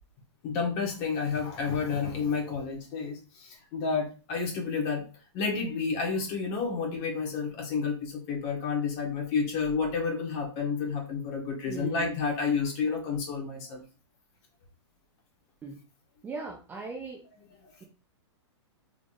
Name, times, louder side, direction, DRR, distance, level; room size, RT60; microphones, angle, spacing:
voice 1, 0.4-5.0 5.3-13.8, left 5 dB, 35° left, 0 dB, 1.5 m, -30 dB
voice 2, 11.7-12.1 15.6-15.8 16.2-17.2, right 4 dB, 10° right, -1 dB, 0.4 m, -38 dB
3.8 x 3.3 x 2.5 m, 0.35 s
hypercardioid pair, 150°, 15 cm